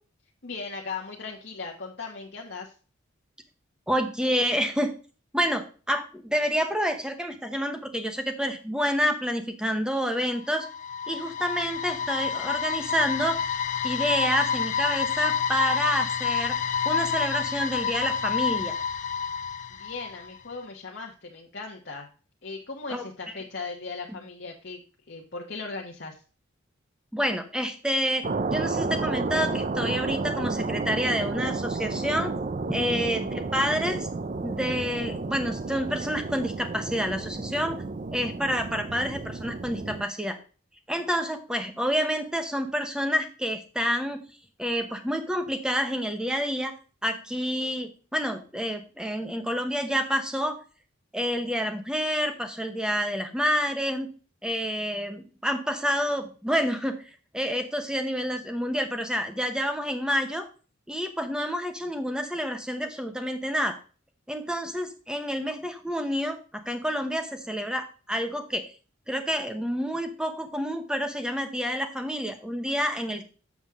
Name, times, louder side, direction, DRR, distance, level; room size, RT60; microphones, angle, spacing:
voice 1, 0.4-2.7 19.7-22.1 22.4-26.2 32.8-33.2, left 4 dB, 55° left, 0 dB, 1.1 m, -38 dB
voice 2, 3.9-4.9 5.3-10.7 11.1-13.4 13.8-16.6 16.8-18.7 22.9-23.0 27.1-32.3 32.7-34.1 34.4-37.8 38.1-40.4 40.9-44.2 44.6-46.7 47.0-50.6 51.1-54.1 54.4-57.0 57.3-60.4 60.9-63.8 64.3-66.4 66.7-68.7 69.1-73.3, equal, 5° right, 6 dB, 0.9 m, -28 dB
sound 1, 10.3-20.4, left 7 dB, 35° left, 0.3 m, -29 dB
sound 2, 28.2-40.0, right 3 dB, 35° right, 0.4 m, -31 dB
7.3 x 7.1 x 3.6 m, 0.37 s
head